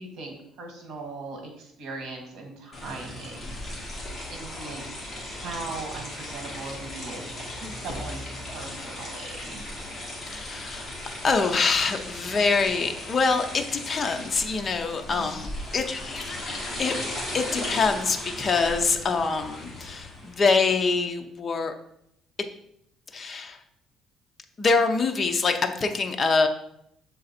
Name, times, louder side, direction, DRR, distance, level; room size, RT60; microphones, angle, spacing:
voice 1, 0.0-3.5 4.3-7.3 7.6-9.6 15.1-15.4, right 3 dB, 65° right, 2 dB, 1.7 m, -39 dB
sound 1, 2.7-20.4, left 1 dB, 10° left, 2.0 m, -37 dB
voice 2, 10.3-10.9 11.2-15.5 15.7-16.9 17.3-21.7 23.1-23.6 24.6-26.5, left 4 dB, 30° left, 5 dB, 0.6 m, -25 dB
6.8 x 3.9 x 4.2 m, 0.74 s
cardioid pair, 150°, 0 cm